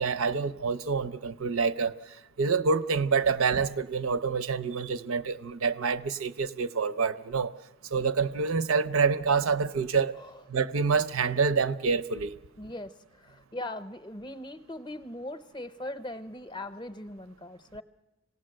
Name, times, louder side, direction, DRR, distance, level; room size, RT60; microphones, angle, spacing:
voice 1, 0.0-1.9 2.4-7.5 7.9-10.2 10.5-12.4, right 5 dB, 80° right, 0.7 m, -27 dB
voice 2, 12.6-12.9 13.2-17.8, left 1 dB, 20° left, 0.7 m, -39 dB
27.0 x 17.5 x 7.7 m
head